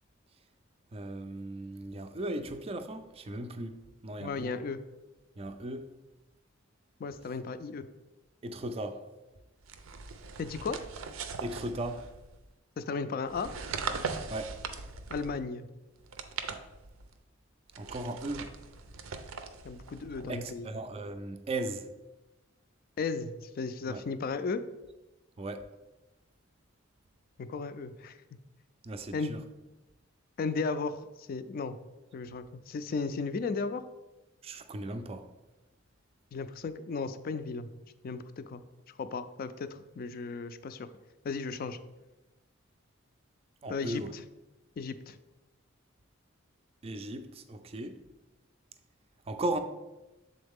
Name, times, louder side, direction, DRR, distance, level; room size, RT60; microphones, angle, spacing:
voice 1, 0.9-4.6 5.4-5.9 8.4-9.1 11.4-12.0 14.3-14.6 17.8-18.5 20.3-21.9 23.9-24.0 25.4-25.7 28.8-29.4 34.4-35.3 43.6-44.1 46.8-48.0 49.3-49.6, right 1 dB, 30° right, 0.4 m, -37 dB
voice 2, 4.2-4.8 7.0-7.9 10.4-10.8 12.8-13.5 15.1-15.7 19.6-20.7 23.0-24.6 27.4-28.2 29.1-29.4 30.4-31.8 32.1-33.8 36.3-37.7 38.0-38.6 39.0-40.9 41.2-41.8 43.7-44.2 44.8-45.2, left 4 dB, 45° left, 0.3 m, -35 dB
sound 1, 9.6-12.4 13.2-15.5 16.0-17.1 17.7-20.6, right 5 dB, 85° right, 0.5 m, -40 dB
7.1 x 3.9 x 3.5 m
head